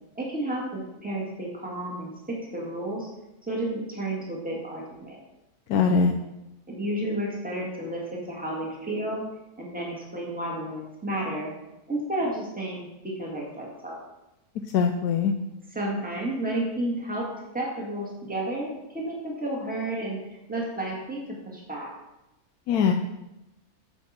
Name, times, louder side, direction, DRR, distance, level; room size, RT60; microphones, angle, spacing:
voice 1, 0.2-3.1 3.5-5.2 5.7-6.1 6.7-9.2 9.6-11.5 11.9-14.0 15.7-17.3 17.5-20.2 20.5-21.9, right 1 dB, 5° right, -3 dB, 1.9 m, -32 dB
voice 2, 5.7-6.1 14.7-15.3 22.7-22.9, left 6 dB, 85° left, 4 dB, 1.1 m, -21 dB
9.3 x 7.2 x 4.3 m, 0.95 s
omnidirectional pair, 1.6 m